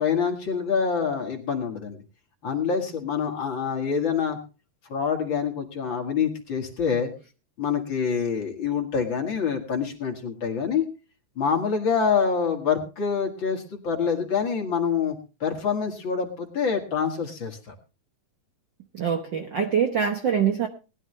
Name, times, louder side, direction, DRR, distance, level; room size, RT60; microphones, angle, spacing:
voice 1, 0.0-2.0 2.4-4.4 4.9-7.1 7.6-10.8 11.4-15.2 15.4-17.7, left 6 dB, 45° left, 3 dB, 2.0 m, -26 dB
voice 2, 18.9-20.7, right 7 dB, 70° right, 6 dB, 1.1 m, -24 dB
19.5 x 12.0 x 3.2 m, 0.31 s
omnidirectional pair, 3.6 m